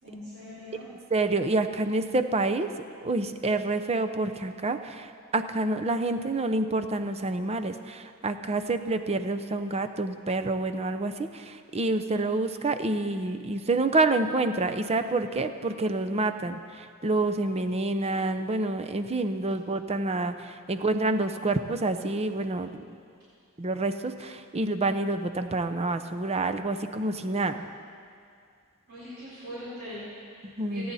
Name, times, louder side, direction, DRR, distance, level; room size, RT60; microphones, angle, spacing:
voice 1, 0.0-0.9 28.9-30.9, equal, 50° right, -10 dB, 4.4 m, -41 dB
voice 2, 1.1-2.7 3.0-22.8 23.6-27.7 30.4-30.9, right 2 dB, 30° right, 8 dB, 0.7 m, -28 dB
29.5 x 10.5 x 4.2 m, 2.3 s
head